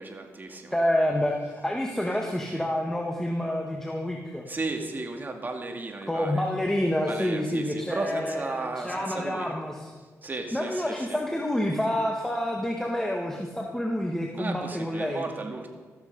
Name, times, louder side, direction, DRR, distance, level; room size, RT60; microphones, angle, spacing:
voice 1, 0.0-0.8 4.5-6.5 7.0-9.5 10.2-11.2 14.4-15.7, right 2 dB, 35° right, 3 dB, 2.2 m, -34 dB
voice 2, 0.7-4.4 6.1-9.9 10.5-15.2, left 1 dB, 10° left, 0 dB, 1.7 m, -28 dB
14.0 x 14.0 x 5.4 m, 1.4 s
cardioid pair, 85°, 6 cm